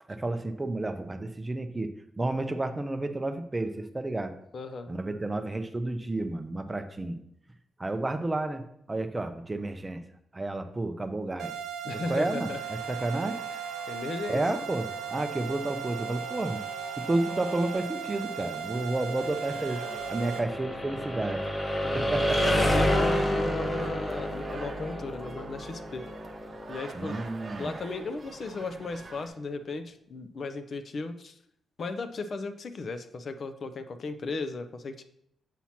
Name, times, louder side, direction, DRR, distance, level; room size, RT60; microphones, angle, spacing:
voice 1, 0.1-4.3 4.9-7.2 7.8-8.6 8.9-10.0 10.3-11.5 11.9-13.4 14.3-16.6 17.0-19.8 20.1-21.5 21.9-22.4 26.9-27.7, right 2 dB, 15° right, 9 dB, 0.5 m, -31 dB
voice 2, 4.5-4.9 11.8-12.6 13.9-14.4 18.7-19.0 21.8-22.1 22.4-26.1 26.7-27.2 27.6-31.4 31.8-35.0, left 3 dB, 45° left, 10 dB, 0.4 m, -36 dB
sound 1, 11.4-20.4, right 8 dB, 85° right, 0.7 m, -37 dB
sound 2, 12.5-28.3, equal, 20° left, 0.9 m, -32 dB
sound 3, 23.2-29.3, right 3 dB, 35° right, 0.8 m, -46 dB
7.3 x 2.9 x 5.7 m, 0.73 s
cardioid pair, 130°, 0 cm